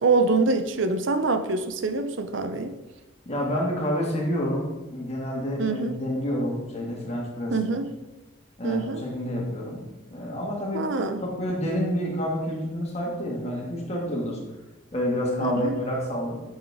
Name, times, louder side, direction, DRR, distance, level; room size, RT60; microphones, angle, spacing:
voice 1, 0.0-2.7 5.6-6.0 7.5-7.9 8.6-9.0 10.7-11.2 15.4-15.8, right 3 dB, 65° right, 0.6 m, -25 dB
voice 2, 3.3-7.6 8.6-9.8 10.1-10.9 11.2-14.4 14.9-16.4, equal, 30° left, 1.9 m, -28 dB
9.1 x 6.5 x 3.5 m
head